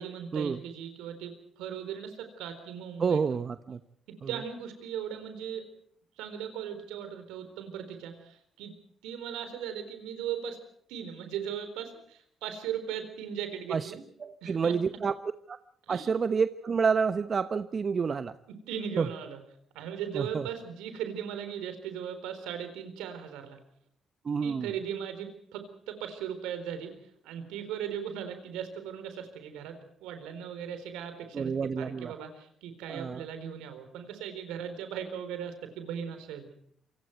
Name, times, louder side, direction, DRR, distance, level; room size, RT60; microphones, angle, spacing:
voice 1, 0.0-3.4 4.1-5.7 6.2-8.7 9.0-10.6 10.9-14.0 14.4-14.8 15.9-16.1 18.5-19.4 19.7-23.6 24.4-36.5, right 8 dB, 80° right, 9 dB, 4.0 m, -38 dB
voice 2, 3.0-3.8 13.7-13.9 14.2-15.1 15.5-15.6 15.9-18.3 19.0-19.1 20.2-20.4 24.2-24.7 31.3-32.1 32.9-33.2, right 5 dB, 50° right, 11 dB, 1.0 m, -28 dB
28.0 x 24.5 x 4.6 m, 0.64 s
hypercardioid pair, 55°, 0 cm